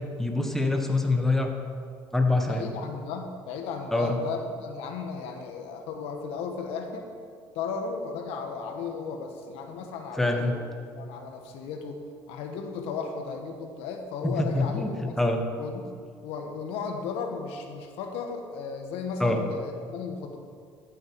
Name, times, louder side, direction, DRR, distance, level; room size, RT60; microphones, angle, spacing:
voice 1, 0.2-1.5 2.1-2.6 3.9-4.2 10.2-10.6 14.2-15.4 19.2-19.4, left 2 dB, 5° left, 3 dB, 1.4 m, -25 dB
voice 2, 2.4-7.1 7.5-10.7 11.0-12.0 12.3-15.2 15.6-15.9 16.2-20.4, left 5 dB, 80° left, 4 dB, 1.3 m, -35 dB
13.5 x 8.6 x 4.7 m, 2.2 s
cardioid pair, 100°, 10 cm